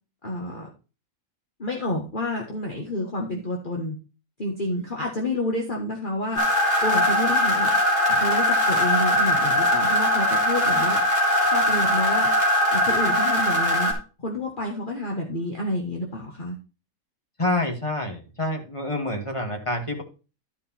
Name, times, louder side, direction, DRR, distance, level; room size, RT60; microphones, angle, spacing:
voice 1, 0.2-0.7 1.6-4.0 4.4-6.4 6.8-7.7 8.1-11.0 11.4-12.3 12.7-13.9 14.2-16.6, left 1 dB, 35° left, -1 dB, 1.7 m, -29 dB
sound 1, 6.3-13.9, left 1 dB, 50° left, 3.0 m, -21 dB
voice 2, 17.4-20.0, left 1 dB, 20° left, 1 dB, 2.1 m, -27 dB
12.0 x 5.2 x 4.4 m, 0.32 s
omnidirectional pair, 1.5 m